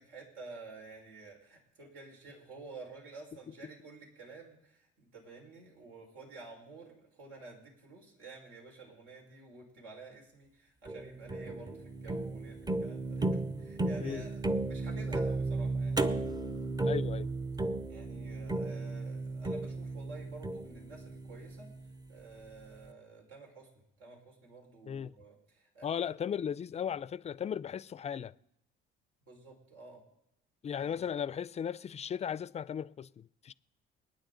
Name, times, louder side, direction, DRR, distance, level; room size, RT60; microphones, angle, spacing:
voice 1, 0.0-16.1 17.9-21.7 22.1-26.1 29.2-30.0 30.8-31.0, right 3 dB, 85° right, 5.1 m, -51 dB
sound 1, 10.9-22.1, right 2 dB, 20° right, 0.7 m, -35 dB
voice 2, 16.8-17.3 24.9-25.1 25.8-28.3 30.6-33.5, left 8 dB, 30° left, 0.4 m, -36 dB
28.5 x 9.5 x 3.9 m
cardioid pair, 110°, 21 cm